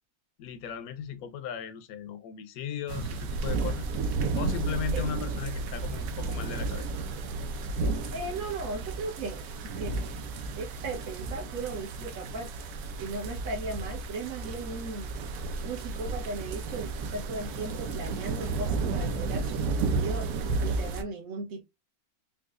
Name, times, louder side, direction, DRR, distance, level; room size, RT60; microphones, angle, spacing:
voice 1, 0.4-6.9, left 8 dB, 75° left, 1.0 m, -37 dB
sound 1, 2.9-21.0, right 3 dB, 90° right, 1.1 m, -32 dB
voice 2, 8.1-9.4 9.8-10.1 10.5-12.5 13.0-15.1 15.6-20.3 20.6-21.6, right 3 dB, 65° right, 1.4 m, -37 dB
4.5 x 2.3 x 2.4 m
omnidirectional pair, 1.6 m